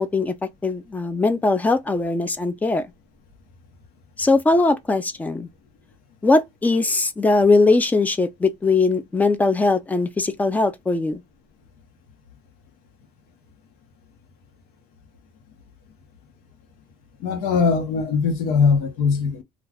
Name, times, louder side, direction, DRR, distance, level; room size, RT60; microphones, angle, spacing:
voice 1, 0.0-2.9 4.2-5.5 6.2-11.2, left 3 dB, 10° left, 0.4 m, -20 dB
voice 2, 17.2-19.4, left 5 dB, 80° left, 0.9 m, -20 dB
2.4 x 2.3 x 3.3 m
cardioid pair, 150°, 15 cm